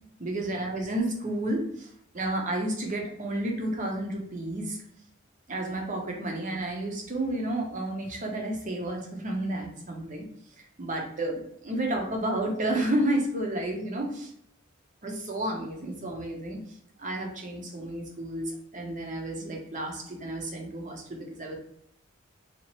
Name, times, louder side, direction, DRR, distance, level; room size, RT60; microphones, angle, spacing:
voice 1, 0.2-1.9 2.1-4.8 5.5-10.3 10.8-14.3 15.0-16.6 17.0-21.6, right 1 dB, 40° right, 1 dB, 0.7 m, -31 dB
2.8 x 2.5 x 2.9 m, 0.70 s
head